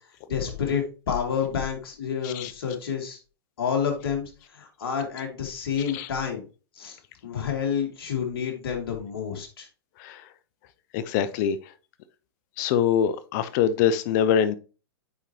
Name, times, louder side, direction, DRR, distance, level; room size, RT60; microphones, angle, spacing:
voice 1, 0.3-3.2 3.6-6.4 6.7-7.0 7.2-9.7, left 7 dB, 65° left, 2.3 m, -29 dB
voice 2, 10.9-11.7 12.6-14.5, left 8 dB, 45° left, 0.7 m, -24 dB
8.1 x 4.6 x 2.9 m
hypercardioid pair, 115°, 13 cm